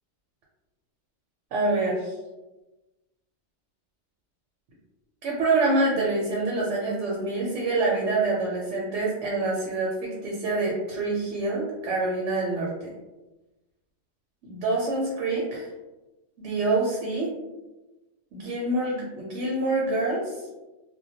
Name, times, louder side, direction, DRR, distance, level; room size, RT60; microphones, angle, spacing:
voice 1, 1.5-2.1 5.2-12.9 14.4-15.7 16.4-17.3 18.3-20.4, right 2 dB, 80° right, -3 dB, 0.9 m, -26 dB
2.2 x 2.1 x 2.7 m, 1.1 s
omnidirectional pair, 1.2 m